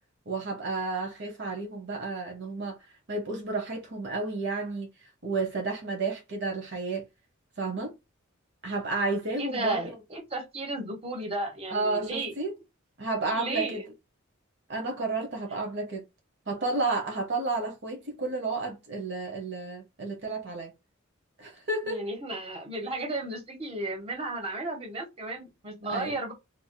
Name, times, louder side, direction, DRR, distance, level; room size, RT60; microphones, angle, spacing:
voice 1, 0.3-2.8 3.1-7.1 7.6-7.9 8.6-9.8 11.7-12.5 13.0-13.8 14.7-16.0 16.5-20.7 21.4-22.0 25.9-26.1, right 3 dB, 55° right, 1.0 m, -31 dB
voice 2, 9.4-12.3 13.3-13.8 21.8-26.3, right 2 dB, 30° right, 1.3 m, -34 dB
4.8 x 2.7 x 2.2 m
head